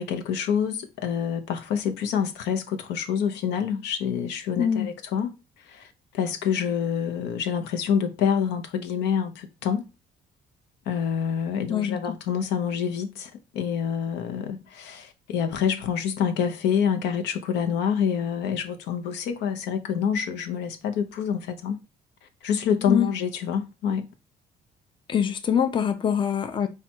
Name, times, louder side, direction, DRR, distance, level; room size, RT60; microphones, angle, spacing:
voice 1, 0.0-5.3 5.6-9.8 10.9-21.8 22.4-24.1, left 7 dB, 85° left, 0.8 m, -27 dB
voice 2, 4.6-4.9 11.7-12.0 22.9-23.1 25.1-26.7, left 8 dB, 30° left, 0.6 m, -24 dB
4.3 x 2.4 x 4.4 m
cardioid pair, 110°, 17 cm